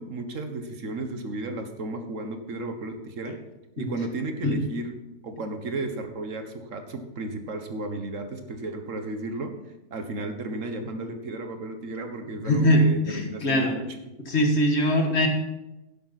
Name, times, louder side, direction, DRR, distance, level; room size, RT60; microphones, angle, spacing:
voice 1, 0.0-3.3 3.8-4.9 5.2-9.5 9.9-14.1, right 2 dB, 80° right, 6 dB, 1.7 m, -34 dB
voice 2, 12.5-13.7 14.3-15.3, equal, 60° left, 3 dB, 1.9 m, -22 dB
11.0 x 11.0 x 4.2 m, 0.98 s
omnidirectional pair, 1.3 m